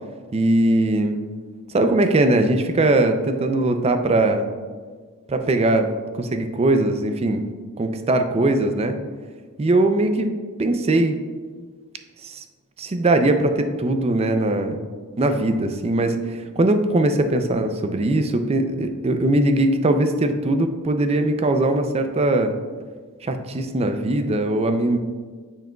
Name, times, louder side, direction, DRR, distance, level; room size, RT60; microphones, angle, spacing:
voice 1, 0.3-1.2 1.7-4.5 5.3-5.9 6.2-7.5 7.8-9.0 9.6-10.3 10.6-11.2 12.2-12.4 12.8-14.8 15.2-22.5 23.2-25.0, right 2 dB, 25° right, 7 dB, 0.4 m, -20 dB
8.9 x 4.7 x 2.3 m, 1.5 s
head